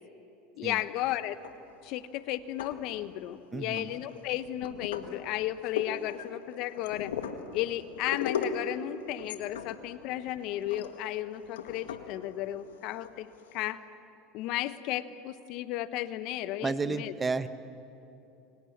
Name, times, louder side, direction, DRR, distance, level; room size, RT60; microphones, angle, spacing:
voice 1, 0.6-1.4 1.8-7.1 7.5-13.8 14.3-17.1, left 14 dB, 60° left, 13 dB, 1.1 m, -34 dB
sound 1, 1.3-1.9 2.4-3.3 3.8-13.7, left 6 dB, 85° left, 1.9 m, -39 dB
voice 2, 3.5-3.9 16.6-17.5, right 4 dB, 20° right, 11 dB, 1.2 m, -31 dB
29.5 x 24.5 x 7.4 m, 2.9 s
hypercardioid pair, 90°, 0 cm